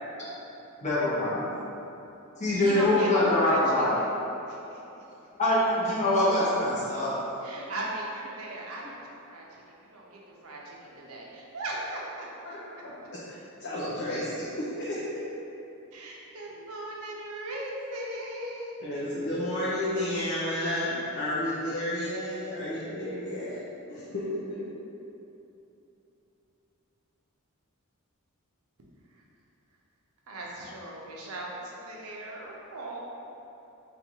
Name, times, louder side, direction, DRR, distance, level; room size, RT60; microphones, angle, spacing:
voice 1, 0.8-1.4 2.4-3.9 5.4-7.2, left 1 dB, 35° left, -10 dB, 1.0 m, -24 dB
voice 2, 2.6-4.1 4.5-5.0 7.4-9.6 9.9-12.3 15.9-19.0 29.1-29.2 30.3-33.0, right 1 dB, 70° right, -3 dB, 0.7 m, -38 dB
voice 3, 13.3-15.2 18.8-23.6 23.9-24.6, left 1 dB, 50° left, -8 dB, 0.6 m, -32 dB
3.4 x 2.5 x 4.5 m, 3.0 s
head